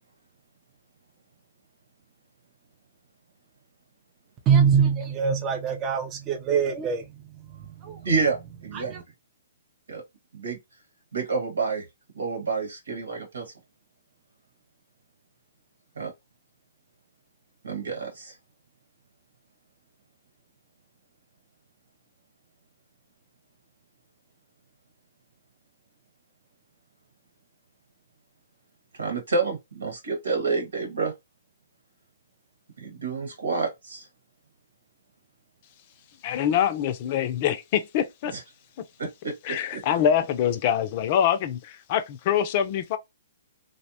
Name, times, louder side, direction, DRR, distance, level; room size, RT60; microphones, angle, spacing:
voice 1, 4.5-7.1 7.5-8.1 8.7-9.0, right 7 dB, 25° right, 0.5 m, -24 dB
voice 2, 8.0-8.9 9.9-10.0 10.3-10.6 11.1-11.8 12.1-13.5 16.0-16.1 17.6-18.3 29.0-31.1 32.8-34.0 38.3-38.4 39.0-39.8, right 4 dB, 85° right, 1.5 m, -29 dB
voice 3, 36.2-38.3 39.4-43.0, left 9 dB, 40° left, 0.4 m, -24 dB
2.7 x 2.1 x 2.7 m
hypercardioid pair, 140°, 0 cm